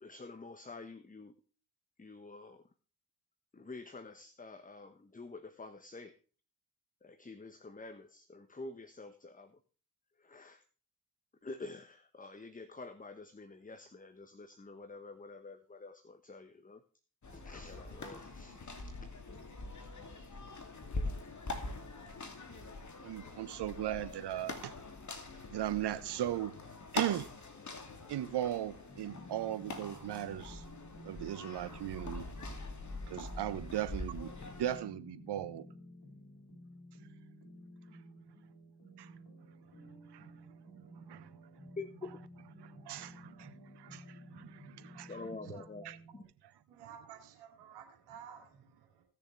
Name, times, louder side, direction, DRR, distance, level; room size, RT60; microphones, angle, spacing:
voice 1, 0.0-1.3 2.0-2.6 3.5-6.1 7.0-9.6 10.2-10.6 11.4-16.8 17.3-19.1 41.8-42.1 43.3-43.4 45.1-45.8 46.1-46.2, left 3 dB, 20° left, 1.2 m, -48 dB
sound 1, 17.2-34.8, left 2 dB, 40° left, 2.6 m, -44 dB
voice 2, 23.0-24.7 25.5-26.5 26.9-27.3 28.1-30.6 31.0-32.3 33.1-35.6 39.0-39.1 40.1-40.3 41.1-41.3 42.8-45.1 45.8-46.0, right 12 dB, 60° right, 1.1 m, -37 dB
sound 2, 28.9-46.3, equal, 55° left, 5.7 m, -54 dB
voice 3, 45.4-45.9 46.7-49.0, right 8 dB, 85° right, 2.8 m, -52 dB
17.5 x 6.9 x 3.3 m
hypercardioid pair, 45°, 45 cm